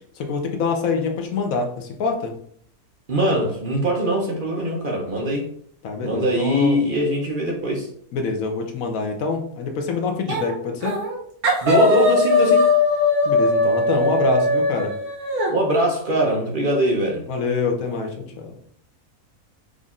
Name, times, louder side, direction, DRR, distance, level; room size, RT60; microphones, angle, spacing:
voice 1, 0.2-2.3 5.8-6.8 8.1-11.0 13.2-14.9 17.3-18.5, left 4 dB, 70° left, 3 dB, 1.2 m, -25 dB
voice 2, 3.1-5.4 6.0-7.9 11.6-12.7 15.5-17.2, right 1 dB, 40° right, -1 dB, 1.0 m, -22 dB
sound 1, 10.3-10.5 10.8-11.2 11.4-15.5, left 2 dB, 80° right, 1.7 m, -19 dB
5.1 x 2.7 x 3.6 m, 0.63 s
omnidirectional pair, 1.6 m